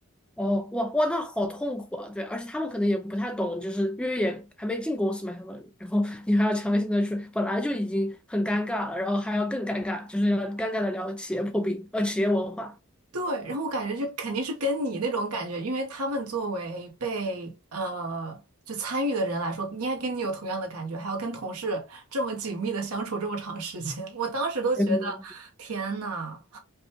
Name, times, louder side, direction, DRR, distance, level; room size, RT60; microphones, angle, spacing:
voice 1, 0.4-12.7 24.8-25.1, left 1 dB, 5° left, 0.3 m, -27 dB
voice 2, 13.1-18.4 18.7-26.6, right 2 dB, 85° right, 1.2 m, -30 dB
5.0 x 2.3 x 2.9 m
head